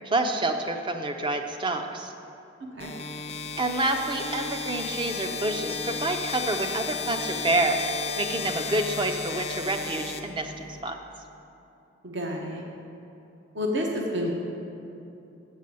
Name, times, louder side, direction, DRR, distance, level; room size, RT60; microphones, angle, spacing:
voice 1, 0.1-2.1 3.6-7.8 8.2-10.5 10.8-11.0, right 2 dB, 25° right, 5 dB, 0.5 m, -28 dB
sound 1, 2.8-10.8, left 4 dB, 30° left, 0.5 m, -34 dB
voice 2, 12.0-12.6 13.5-14.3, left 1 dB, 60° right, 0 dB, 0.8 m, -29 dB
7.5 x 6.5 x 6.9 m, 2.8 s
head